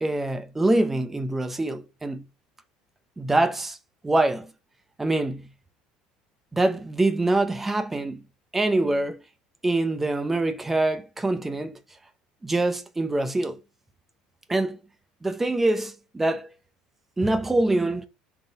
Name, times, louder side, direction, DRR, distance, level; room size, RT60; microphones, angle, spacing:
voice 1, 0.0-2.3 3.2-3.8 4.0-4.5 5.0-5.5 6.5-8.2 8.5-9.2 9.6-11.8 12.4-13.6 14.5-14.8 15.2-16.5 17.2-18.1, right 2 dB, 10° right, 0.6 m, -24 dB
6.4 x 3.6 x 4.6 m
cardioid pair, 170°, 3 cm